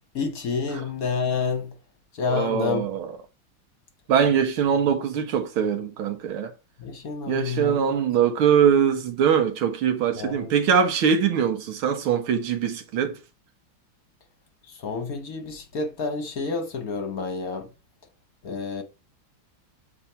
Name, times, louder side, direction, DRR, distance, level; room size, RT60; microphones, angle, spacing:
voice 1, 0.1-1.7 2.1-2.9 6.8-8.0 10.2-10.5 14.7-17.7 18.4-18.8, left 4 dB, 55° left, 1.2 m, -29 dB
voice 2, 2.3-3.2 4.1-6.5 7.3-13.2, right 7 dB, 85° right, 2.0 m, -22 dB
7.5 x 4.3 x 4.3 m
omnidirectional pair, 2.2 m